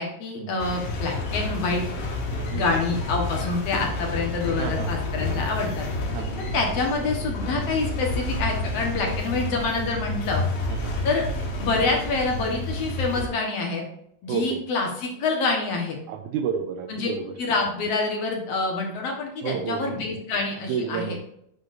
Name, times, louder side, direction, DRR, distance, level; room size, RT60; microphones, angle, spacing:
voice 1, 0.0-1.8 2.5-5.9 6.5-10.4 11.0-11.3 11.6-13.8 14.2-16.0 16.9-17.1 17.4-21.2, left 3 dB, 60° left, 1 dB, 2.1 m, -26 dB
sound 1, 0.6-13.3, left 2 dB, 80° left, 2.9 m, -29 dB
voice 2, 4.6-4.9 6.1-6.4 10.7-11.0 14.3-14.6 16.1-17.3 19.4-19.9 20.7-21.2, right 7 dB, 80° right, 5 dB, 1.9 m, -30 dB
8.3 x 6.1 x 2.6 m, 0.73 s
omnidirectional pair, 3.7 m